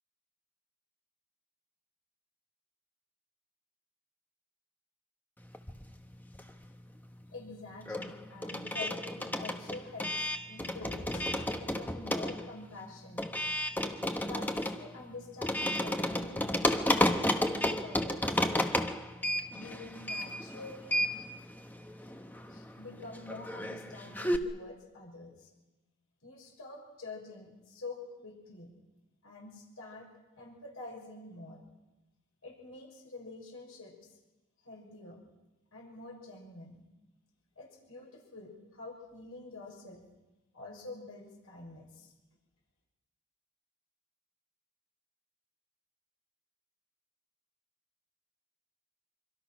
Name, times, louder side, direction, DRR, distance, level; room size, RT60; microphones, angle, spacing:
sound 1, 5.5-6.8 7.1-24.4, left 1 dB, 10° left, 1.1 m, -33 dB
voice 1, 7.3-13.3 14.2-18.4 19.5-21.0 22.5-25.5 26.2-28.7 29.2-30.1 30.4-31.6 32.4-33.9 34.6-35.2 35.7-36.8 37.6-40.0 40.5-42.1, left 2 dB, 70° left, -1 dB, 6.3 m, -47 dB
25.5 x 25.0 x 6.1 m, 1.0 s
head